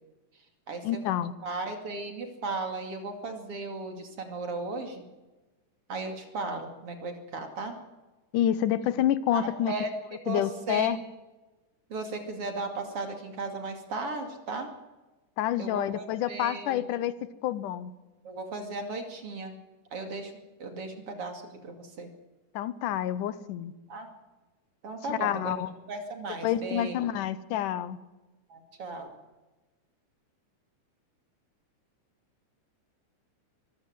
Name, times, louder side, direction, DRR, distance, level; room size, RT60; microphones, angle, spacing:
voice 1, 0.8-1.3 8.3-9.7 10.3-11.0 15.4-17.1 17.4-17.9 22.5-23.7 25.1-25.7 26.4-28.0, left 11 dB, 80° left, 16 dB, 2.4 m, -28 dB
voice 2, 1.4-5.0 5.9-7.7 9.3-9.9 10.2-11.0 11.9-14.7 15.6-16.8 18.2-19.5 19.9-20.3 20.6-22.1 23.9-24.1 24.8-25.5 25.9-27.0 28.5-29.1, right 3 dB, 50° right, 5 dB, 3.2 m, -36 dB
24.0 x 14.5 x 7.6 m, 1.2 s
omnidirectional pair, 3.7 m